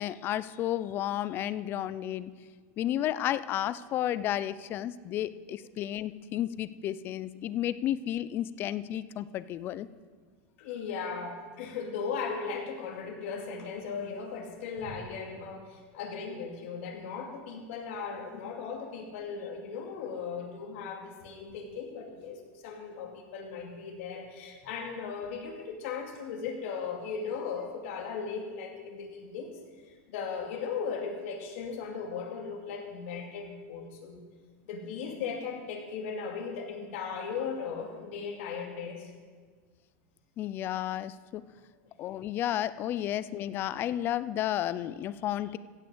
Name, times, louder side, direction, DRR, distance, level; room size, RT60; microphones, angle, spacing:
voice 1, 0.0-2.3 2.8-9.9 40.4-41.4 42.0-45.6, left 12 dB, 30° left, 15 dB, 0.4 m, -32 dB
voice 2, 10.6-29.5 30.1-34.2 34.7-39.1, left 5 dB, 65° left, 1 dB, 2.5 m, -37 dB
15.5 x 6.0 x 8.0 m, 1.5 s
supercardioid pair, 165°, 8 cm